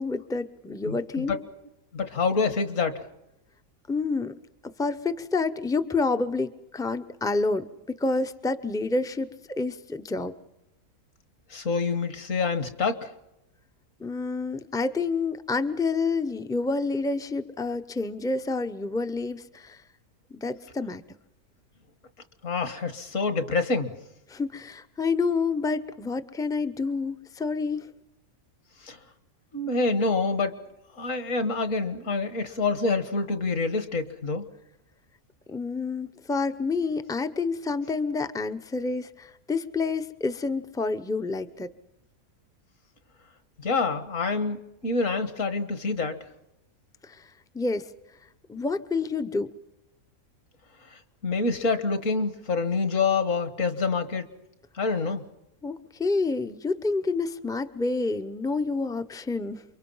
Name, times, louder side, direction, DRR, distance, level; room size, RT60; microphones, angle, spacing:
voice 1, 0.0-1.4 3.9-4.3 4.6-10.4 14.0-19.8 20.3-21.0 24.3-27.9 35.5-41.7 47.0-47.2 47.5-47.9 48.5-49.5 55.6-59.6, left 3 dB, 5° left, 10 dB, 0.4 m, -28 dB
voice 2, 0.8-1.4 1.9-3.0 11.5-13.1 22.4-23.9 28.8-29.0 29.5-30.6 31.0-34.5 43.6-46.2 50.9-54.3 54.8-55.2, left 4 dB, 60° left, 10 dB, 1.9 m, -27 dB
28.5 x 23.5 x 5.6 m, 0.89 s
omnidirectional pair, 1.5 m